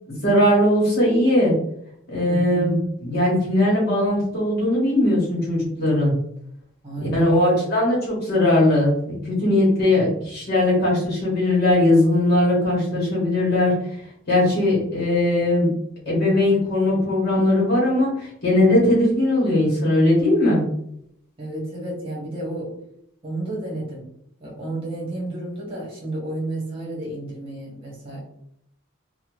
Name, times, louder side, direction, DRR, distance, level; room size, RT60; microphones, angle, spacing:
voice 1, 0.1-1.5 2.1-6.1 7.0-13.7 14.3-15.7 16.1-20.6, left 1 dB, 50° left, -6 dB, 1.2 m, -19 dB
voice 2, 2.3-2.8 6.8-7.7 21.4-22.8 23.2-24.1 24.4-28.2, right 2 dB, 25° right, -4 dB, 1.1 m, -31 dB
2.8 x 2.2 x 3.0 m, 0.73 s
head